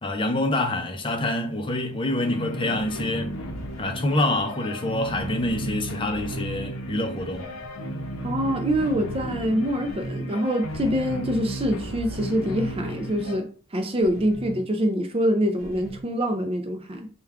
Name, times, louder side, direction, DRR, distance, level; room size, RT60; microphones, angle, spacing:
voice 1, 0.0-3.4 3.8-7.5, left 1 dB, 25° left, 0.5 m, -26 dB
sound 1, 2.2-13.4, equal, 75° left, 0.7 m, -34 dB
sound 2, 3.5-4.0 5.2-5.7 7.2-7.8 8.7-9.0 9.9-10.3 10.7-11.1 12.4-12.9 14.0-14.6 15.6-16.0, right 1 dB, 5° left, 1.8 m, -41 dB
voice 2, 8.2-17.1, equal, 25° right, 0.4 m, -25 dB
4.4 x 2.3 x 3.5 m
head